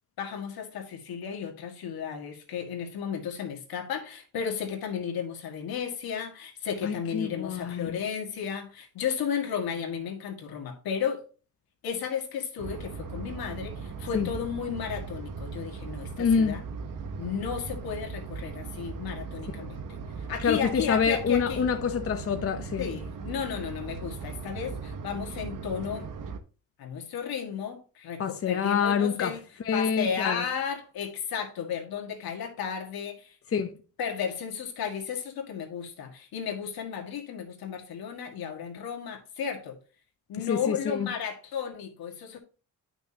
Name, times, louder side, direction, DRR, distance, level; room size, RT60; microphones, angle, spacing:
voice 1, 0.2-11.2 11.8-16.6 17.2-21.7 22.8-26.1 26.8-29.4 29.7-33.4 34.0-39.8 40.3-42.4, left 7 dB, 85° left, 1.9 m, -34 dB
voice 2, 6.8-8.0 14.1-14.3 16.2-16.6 19.6-19.7 20.4-22.9 28.2-30.4 33.5-33.7 40.4-41.1, left 6 dB, 40° left, 0.8 m, -27 dB
sound 1, 12.6-26.4, right 5 dB, 65° right, 1.1 m, -38 dB
9.2 x 6.1 x 2.8 m
cardioid pair, 95°, 35 cm